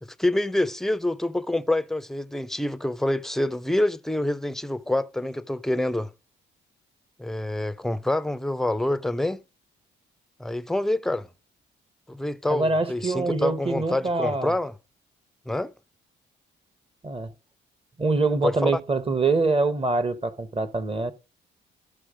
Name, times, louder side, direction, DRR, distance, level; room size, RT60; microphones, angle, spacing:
voice 1, 0.0-6.1 7.2-9.4 10.4-11.3 12.1-14.7 15.5-15.7 18.4-18.7, left 1 dB, ahead, 0.5 m, -26 dB
voice 2, 12.5-14.5 17.0-17.3 18.0-21.1, right 3 dB, 30° right, 1.1 m, -24 dB
13.0 x 4.8 x 5.0 m
cardioid pair, 90°, 20 cm